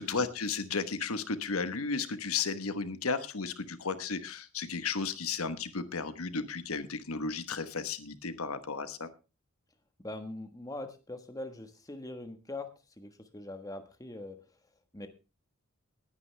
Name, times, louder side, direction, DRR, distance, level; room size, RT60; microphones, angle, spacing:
voice 1, 0.0-9.1, left 4 dB, 80° left, 11 dB, 1.2 m, -34 dB
voice 2, 10.0-12.7 13.0-14.4 14.9-15.1, left 2 dB, 15° left, 7 dB, 1.3 m, -42 dB
19.0 x 9.6 x 3.3 m, 0.32 s
head